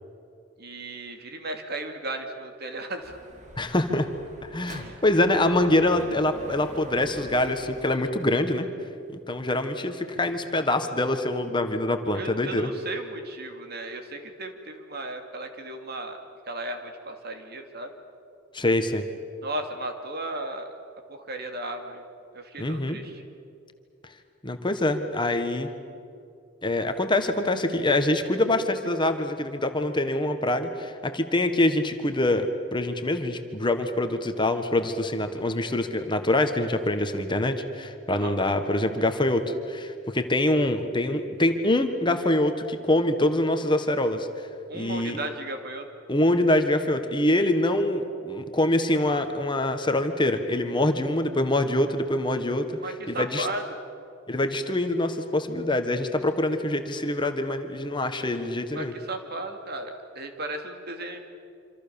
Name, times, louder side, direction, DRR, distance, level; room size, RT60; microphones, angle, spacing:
voice 1, 0.6-3.2 4.7-5.0 12.1-16.2 16.5-17.9 19.4-20.7 21.1-22.0 22.3-23.2 38.1-38.4 44.7-45.9 52.8-53.6 58.7-61.2, right 2 dB, 55° right, 5 dB, 2.7 m, -35 dB
Dog / Motorcycle, 3.0-8.0, right 1 dB, 40° right, 2.6 m, -46 dB
voice 2, 3.6-4.1 4.4-8.7 9.3-12.7 18.5-19.0 22.6-23.0 24.4-25.7 26.6-44.3 44.7-45.2 46.1-52.8 53.1-53.5 54.3-58.9, left 1 dB, 25° left, 7 dB, 1.6 m, -25 dB
27.0 x 26.0 x 7.1 m, 2.5 s
head